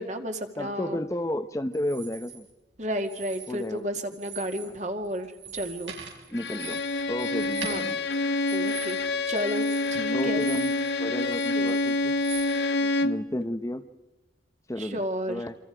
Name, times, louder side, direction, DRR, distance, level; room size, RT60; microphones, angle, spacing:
voice 1, 0.0-1.0 2.8-5.9 7.6-7.9 8.5-9.0 9.3-10.5 11.5-11.8 12.8-12.9 14.8-15.4, equal, 40° right, 6 dB, 2.1 m, -32 dB
voice 2, 0.6-2.5 3.5-3.9 6.3-6.8 7.1-8.0 10.1-10.7 11.0-12.1 13.0-13.8 14.7-15.0 15.3-15.5, left 1 dB, 15° left, 9 dB, 0.7 m, -32 dB
sound 1, 1.7-2.4 3.0-3.8 4.1-4.7 5.0-10.9 11.2-12.5, right 7 dB, 75° right, 6.1 m, -42 dB
Bowed string instrument, 6.3-13.3, left 2 dB, 65° left, 1.0 m, -27 dB
27.5 x 26.0 x 5.0 m, 1.0 s
head